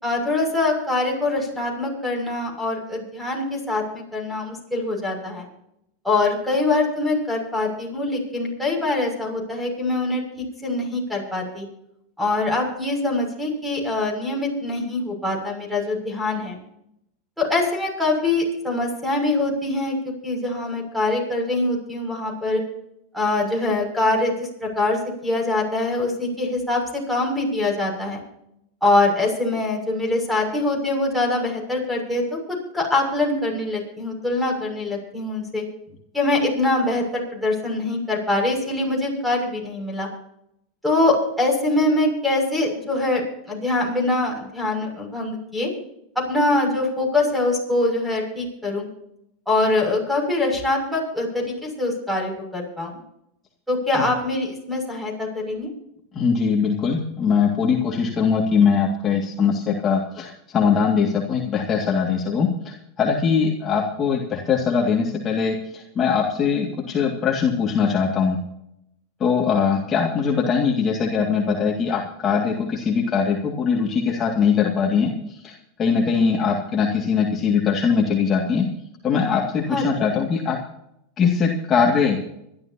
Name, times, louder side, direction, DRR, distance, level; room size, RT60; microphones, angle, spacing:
voice 1, 0.0-5.5 6.0-11.7 12.2-16.6 17.4-22.6 23.1-28.2 28.8-35.6 36.1-40.1 40.8-45.7 46.1-48.9 49.5-52.9 53.7-55.7 79.7-79.8, left 2 dB, ahead, 2 dB, 6.5 m, -23 dB
voice 2, 56.1-68.4 69.2-78.7 79.0-80.6 81.2-82.2, left 6 dB, 30° left, 0 dB, 2.2 m, -21 dB
25.0 x 12.0 x 2.9 m, 0.78 s
supercardioid pair, 135°, 0 cm